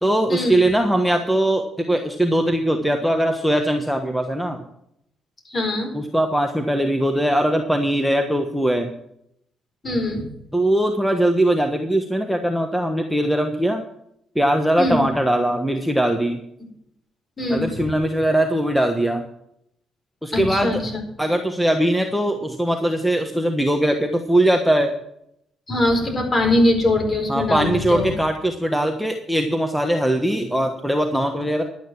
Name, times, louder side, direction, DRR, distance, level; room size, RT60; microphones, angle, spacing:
voice 1, 0.0-4.6 5.9-8.9 10.5-13.8 14.3-16.4 17.5-19.2 20.2-20.8 21.2-24.9 27.3-31.6, right 1 dB, ahead, 4 dB, 1.2 m, -21 dB
voice 2, 5.4-5.9 9.8-10.3 14.8-15.0 17.4-17.9 20.3-21.0 25.7-28.1, left 1 dB, 30° left, 3 dB, 4.5 m, -22 dB
11.5 x 9.1 x 6.0 m, 0.75 s
cardioid pair, 90°, 0 cm